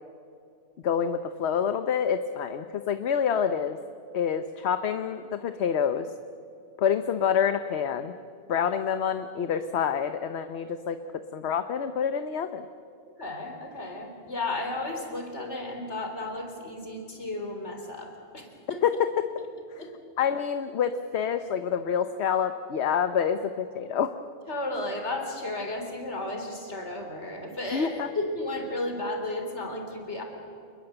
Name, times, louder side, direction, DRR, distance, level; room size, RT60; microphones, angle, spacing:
voice 1, 0.8-3.8 4.1-6.1 6.8-8.1 8.5-11.0 11.3-12.7 18.8-19.3 19.7-19.8 20.2-24.1 27.7-28.1, left 7 dB, 70° left, 9 dB, 1.1 m, -27 dB
voice 2, 13.2-18.8 19.8-19.9 24.5-30.2, left 2 dB, 90° left, 3 dB, 4.1 m, -33 dB
27.5 x 21.5 x 8.0 m, 2.5 s
omnidirectional pair, 1.1 m